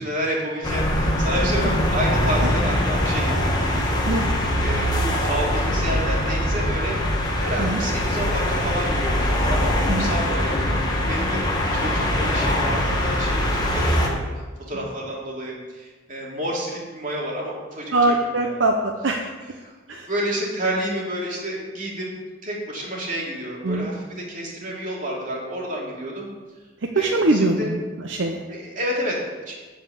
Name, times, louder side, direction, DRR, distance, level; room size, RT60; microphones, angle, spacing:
voice 1, 0.0-4.2 4.6-7.0 7.4-14.3 14.7-18.6 19.6-19.7 20.1-22.1 22.4-26.3 26.9-27.7 28.5-29.5, right 1 dB, 40° right, -3 dB, 2.7 m, -30 dB
sound 1, 0.6-14.1, left 1 dB, 20° left, 1.5 m, -22 dB
voice 2, 4.1-4.4 7.6-7.8 9.9-10.1 17.9-19.2 19.9-20.1 23.6-23.9 27.0-28.4, right 2 dB, 70° right, 3 dB, 0.8 m, -22 dB
11.0 x 5.2 x 8.0 m, 1.3 s
head